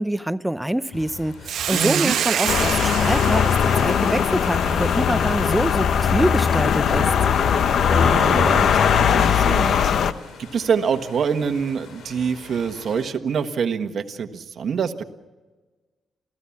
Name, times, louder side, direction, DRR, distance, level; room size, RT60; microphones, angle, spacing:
voice 1, 0.0-7.1, right 1 dB, 5° right, 13 dB, 0.6 m, -25 dB
sound 1, 0.9-13.1, left 4 dB, 85° left, 4.1 m, -44 dB
Hiss, 1.4-6.0, right 9 dB, 85° right, 1.1 m, -28 dB
voice 2, 1.7-2.2 7.9-9.8 10.4-15.0, right 6 dB, 60° right, 7 dB, 1.4 m, -25 dB
sound 2, 2.5-10.1, left 7 dB, 70° left, 0.9 m, -19 dB
28.5 x 16.0 x 7.3 m, 1.3 s
cardioid pair, 115°, 0 cm